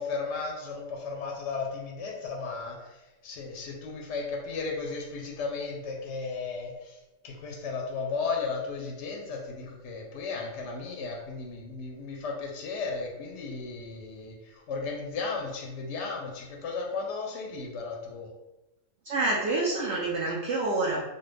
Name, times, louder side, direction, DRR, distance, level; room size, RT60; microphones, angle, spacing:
voice 1, 0.0-7.0 7.2-18.3, left 4 dB, 65° left, 0 dB, 0.8 m, -35 dB
voice 2, 19.0-21.0, right 2 dB, 65° right, -3 dB, 0.7 m, -27 dB
3.2 x 2.2 x 3.2 m, 1.0 s
omnidirectional pair, 1.5 m